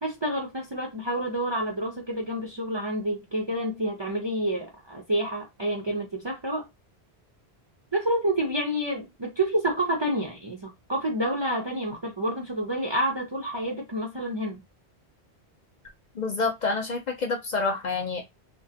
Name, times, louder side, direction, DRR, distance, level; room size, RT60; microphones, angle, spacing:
voice 1, 0.0-6.7 7.9-14.6, right 1 dB, 35° right, 0.5 m, -28 dB
voice 2, 16.1-18.2, left 3 dB, 50° left, 0.6 m, -28 dB
2.4 x 2.2 x 2.7 m
omnidirectional pair, 1.1 m